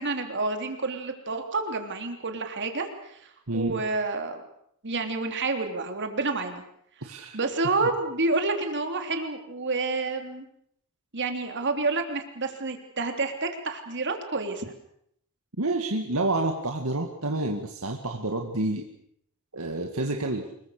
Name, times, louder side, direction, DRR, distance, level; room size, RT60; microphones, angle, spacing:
voice 1, 0.0-3.2 3.5-4.4 4.8-6.6 7.3-10.5 11.1-14.7, right 3 dB, 55° right, 5 dB, 3.4 m, -29 dB
voice 2, 3.5-3.8 7.0-7.4 7.8-7.9 15.6-18.9 19.5-20.5, right 2 dB, 75° right, 3 dB, 2.1 m, -29 dB
26.0 x 22.5 x 6.8 m, 0.69 s
head